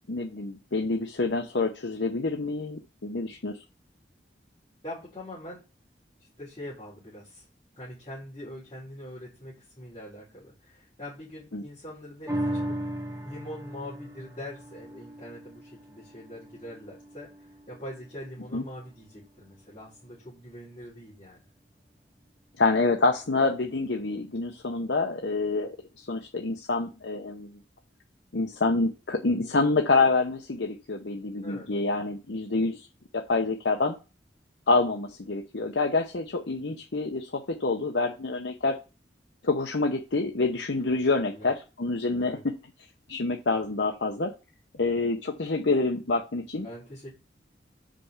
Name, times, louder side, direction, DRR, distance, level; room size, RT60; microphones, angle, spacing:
voice 1, 0.1-3.6 11.5-11.6 18.5-18.6 22.6-25.7 26.1-27.6 28.3-32.9 33.1-33.9 34.7-38.8 39.4-42.5 43.1-44.3 44.7-46.7, left 3 dB, 75° left, 4 dB, 0.9 m, -27 dB
voice 2, 4.8-5.6 6.4-7.5 7.7-12.8 13.2-21.4 31.4-31.7 41.3-41.5 42.2-42.4 44.9-45.1 46.6-47.1, left 1 dB, 30° left, -9 dB, 3.8 m, -43 dB
sound 1, 12.3-18.9 19.4-19.5, right 1 dB, 20° right, 1.6 m, -37 dB
5.6 x 5.1 x 6.5 m, 0.30 s
head